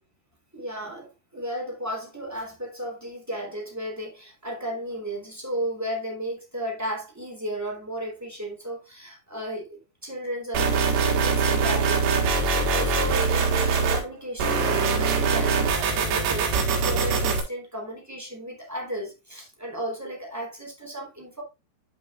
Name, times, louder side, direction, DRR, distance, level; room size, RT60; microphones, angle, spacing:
voice 1, 0.5-21.4, right 1 dB, 5° right, 2.1 m, -34 dB
sound 1, 10.5-14.0 14.4-17.4, right 4 dB, 85° right, 3.9 m, -23 dB
11.5 x 5.7 x 2.5 m
omnidirectional pair, 4.9 m